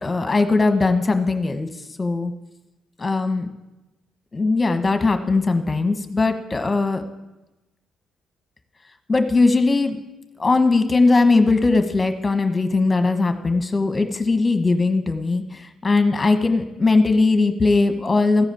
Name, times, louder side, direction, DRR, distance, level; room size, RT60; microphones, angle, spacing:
voice 1, 0.0-1.7 2.0-2.3 3.0-3.5 4.3-7.0 9.1-10.0 10.4-18.5, left 3 dB, 25° left, 7 dB, 1.2 m, -19 dB
14.5 x 4.9 x 8.2 m, 1.0 s
cardioid pair, 90°, 0 cm